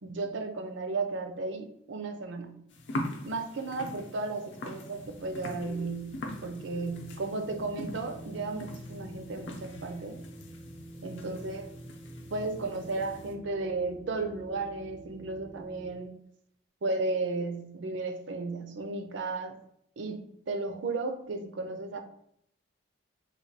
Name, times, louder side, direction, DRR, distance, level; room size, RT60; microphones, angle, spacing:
voice 1, 0.0-2.6 3.2-10.2 11.0-11.7 12.3-16.2 16.8-19.6 20.0-22.0, right 3 dB, 65° right, 6 dB, 0.5 m, -34 dB
sound 1, 2.7-13.3, left 1 dB, 65° left, 0.6 m, -42 dB
sound 2, 5.0-15.9, right 1 dB, 25° left, 0.4 m, -49 dB
3.2 x 2.2 x 4.0 m, 0.74 s
head